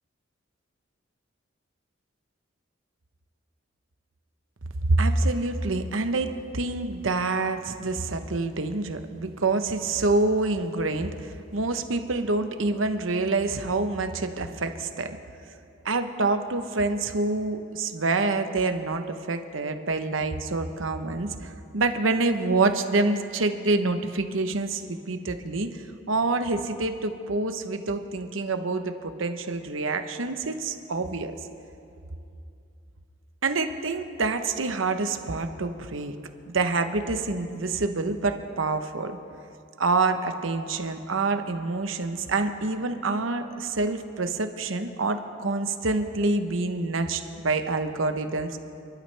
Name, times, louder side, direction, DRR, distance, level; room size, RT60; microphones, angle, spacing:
voice 1, 4.8-15.2 15.8-25.8 26.1-31.3 33.4-36.1 36.5-39.2 39.8-48.6, right 3 dB, 90° right, 8 dB, 1.0 m, -27 dB
29.0 x 12.0 x 3.4 m, 2.6 s
head